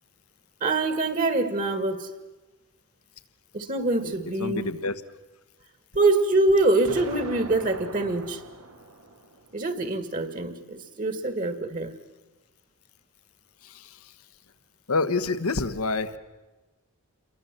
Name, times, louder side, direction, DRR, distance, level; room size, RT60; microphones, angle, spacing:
voice 1, 0.6-2.1 3.5-4.7 6.0-8.4 9.5-11.9, right 2 dB, 40° right, 10 dB, 1.8 m, -24 dB
voice 2, 4.4-4.9 13.6-14.0 14.9-16.2, left 3 dB, 90° left, 11 dB, 1.3 m, -27 dB
Explosion, 6.8-9.8, right 2 dB, 90° right, 2.4 m, -42 dB
29.0 x 22.5 x 7.6 m, 1.2 s
head